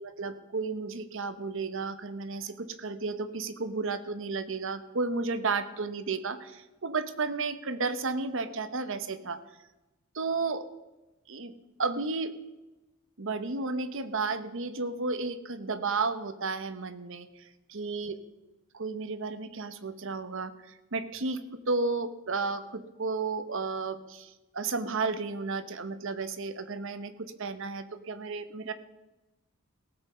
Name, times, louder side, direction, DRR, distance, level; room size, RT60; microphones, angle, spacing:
voice 1, 0.0-9.4 10.1-10.7 11.3-11.5 11.8-12.4 13.2-17.3 17.7-18.2 18.7-28.7, right 4 dB, 60° right, 11 dB, 0.9 m, -33 dB
18.0 x 7.9 x 5.5 m, 1.0 s
head